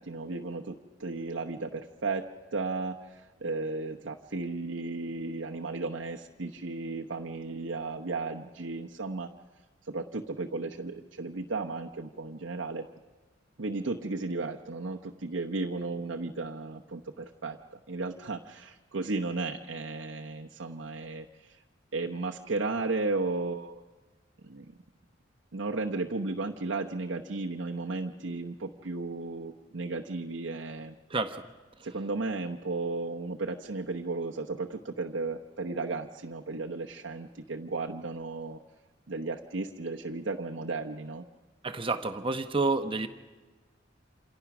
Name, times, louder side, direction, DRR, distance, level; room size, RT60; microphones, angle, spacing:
voice 1, 0.0-9.3 9.8-12.9 13.6-17.6 17.9-21.6 21.9-23.8 24.4-24.7 25.5-30.9 31.8-38.6 39.1-41.2, right 3 dB, 70° right, 0 dB, 1.0 m, -34 dB
voice 2, 31.1-31.4 41.6-43.1, right 3 dB, 30° right, 7 dB, 1.0 m, -29 dB
27.5 x 27.0 x 6.0 m, 1.3 s
head